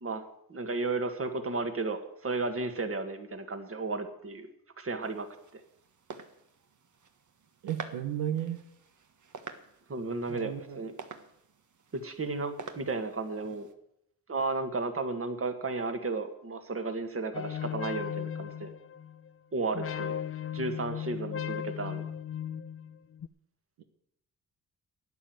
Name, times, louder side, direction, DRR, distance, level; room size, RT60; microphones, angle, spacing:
voice 1, 0.0-4.5 4.8-5.3 5.5-5.6 9.9-10.9 11.9-13.7 14.3-18.7 19.5-20.2 20.5-22.1, right 3 dB, 35° right, 7 dB, 2.0 m, -33 dB
sound 1, 5.0-13.7, right 5 dB, 50° right, 1.5 m, -48 dB
voice 2, 7.6-8.6 10.3-10.8 23.8-23.9, right 11 dB, 80° right, 7 dB, 1.3 m, -34 dB
sound 2, 17.3-19.3 19.7-23.3, left 9 dB, 35° left, 0.6 m, -37 dB
12.0 x 9.3 x 7.9 m, 0.79 s
cardioid pair, 70°, 38 cm